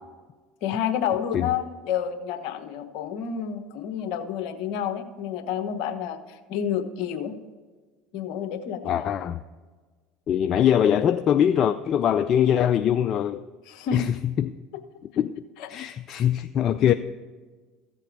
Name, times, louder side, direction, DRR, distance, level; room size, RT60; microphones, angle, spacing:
voice 1, 0.6-7.4 8.1-9.1 13.7-14.0 15.6-15.8, left 8 dB, 65° left, 1.1 m, -29 dB
voice 2, 8.8-9.4 10.3-13.4 13.9-14.5 15.2-16.9, left 9 dB, 50° left, 0.4 m, -22 dB
14.5 x 7.7 x 4.7 m
hypercardioid pair, 80°, 0 cm